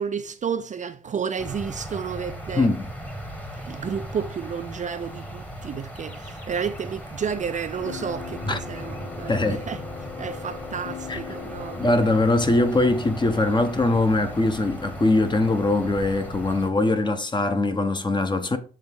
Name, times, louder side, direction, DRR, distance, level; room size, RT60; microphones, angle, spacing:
voice 1, 0.0-2.7 3.6-9.8 10.2-12.1, right 7 dB, 40° right, 0.5 m, -31 dB
sound 1, 1.4-16.7, equal, 10° left, 1.2 m, -37 dB
voice 2, 2.6-2.9 8.5-8.6 9.3-9.6 11.1-11.2 11.8-18.6, left 2 dB, 25° left, 0.9 m, -22 dB
sound 2, 7.8-12.7, left 8 dB, 65° left, 0.8 m, -39 dB
7.8 x 3.3 x 3.6 m
cardioid pair, 90°, 20 cm